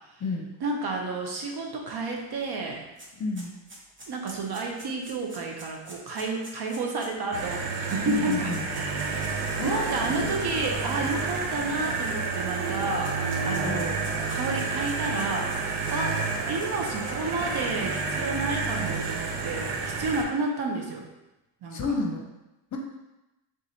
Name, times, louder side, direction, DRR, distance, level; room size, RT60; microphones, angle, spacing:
voice 1, 0.6-2.9 4.1-13.2 13.4-14.0 14.3-16.2 16.5-21.1 21.6-21.8, right 3 dB, 50° right, 1 dB, 0.9 m, -31 dB
sound 1, 2.2-2.3 2.5-9.4 10.2-10.3 11.4-12.4 12.7-16.0 16.4-17.3, right 1 dB, 25° right, 1.1 m, -47 dB
voice 2, 3.2-3.5 8.0-8.7 9.6-10.4 13.6-13.9 21.7-22.2 22.7-22.8, left 3 dB, 35° left, 1 dB, 0.8 m, -31 dB
sound 2, 7.3-20.2, right 4 dB, 90° right, 0.7 m, -30 dB
sound 3, 9.6-18.8, left 1 dB, 10° left, 1.4 m, -44 dB
3.7 x 2.6 x 4.4 m, 0.96 s
supercardioid pair, 75°, 50 cm